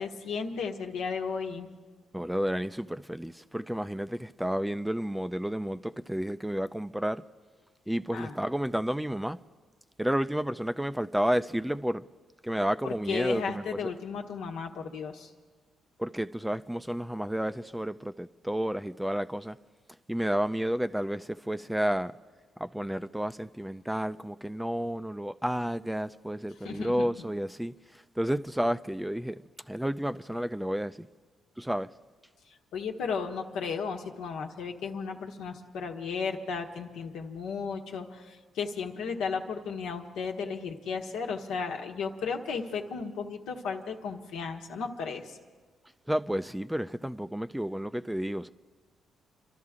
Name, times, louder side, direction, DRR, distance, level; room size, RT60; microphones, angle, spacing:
voice 1, 0.0-1.7 8.1-8.3 12.8-15.3 26.6-27.2 32.7-45.4, left 5 dB, 85° left, 1.3 m, -34 dB
voice 2, 2.1-7.2 7.9-9.4 10.0-12.0 12.4-13.9 16.0-19.6 20.1-22.1 22.6-29.4 29.7-31.1 31.6-31.9 46.1-48.5, equal, 5° right, 0.4 m, -31 dB
29.5 x 12.5 x 3.7 m
cardioid pair, 90°, 0 cm